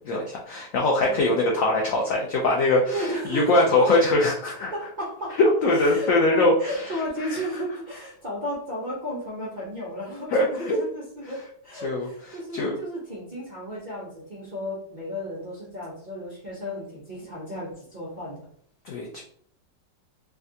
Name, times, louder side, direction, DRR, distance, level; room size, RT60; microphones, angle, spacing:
voice 1, 0.0-4.7 5.6-7.3 10.3-10.8 11.8-12.1 12.5-12.8 18.8-19.2, left 2 dB, 80° left, -1 dB, 0.7 m, -22 dB
voice 2, 1.0-1.4 2.9-3.7 4.7-5.4 5.7-18.5, equal, 55° right, -7 dB, 0.5 m, -34 dB
3.4 x 2.2 x 2.7 m, 0.63 s
omnidirectional pair, 2.0 m